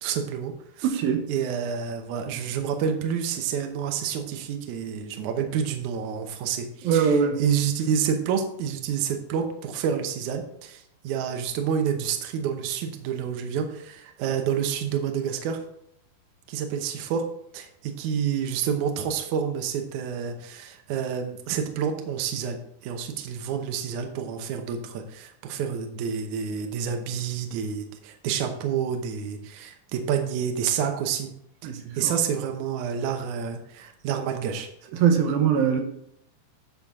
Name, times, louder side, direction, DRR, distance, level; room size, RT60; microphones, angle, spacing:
voice 1, 0.0-0.9 1.3-15.6 16.5-17.2 17.5-31.3 31.6-31.7 32.0-34.7, right 7 dB, 70° right, 4 dB, 2.0 m, -29 dB
voice 2, 0.8-1.3 6.8-7.4 31.6-32.1 35.0-35.8, right 7 dB, 85° right, 4 dB, 2.7 m, -22 dB
10.0 x 5.7 x 3.6 m, 0.72 s
omnidirectional pair, 4.2 m